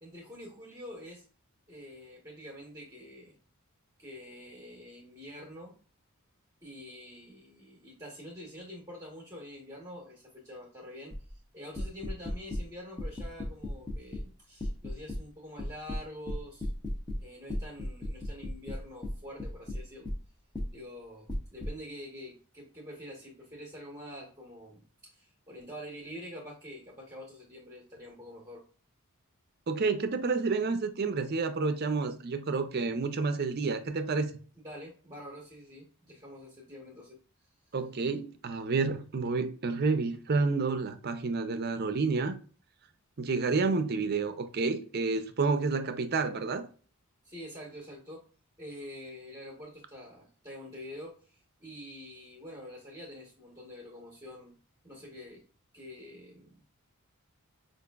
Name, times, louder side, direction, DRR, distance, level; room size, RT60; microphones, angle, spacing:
voice 1, 0.0-1.2 1.7-3.4 4.0-5.8 6.6-11.1 11.5-16.7 17.2-20.1 20.7-28.6 34.6-37.2 47.2-48.3 48.6-54.6 54.8-55.4 55.7-56.6, equal, 15° right, 0.9 m, -46 dB
sound 1, 11.1-11.3 11.8-12.6 13.0-14.3 14.6-15.2 15.6-17.2 17.5-20.2 20.5-20.7 21.3-21.7, left 1 dB, 20° left, 0.6 m, -35 dB
voice 2, 29.7-34.3 37.7-42.4 43.2-46.7, right 4 dB, 45° right, 0.5 m, -29 dB
4.9 x 2.5 x 2.2 m
head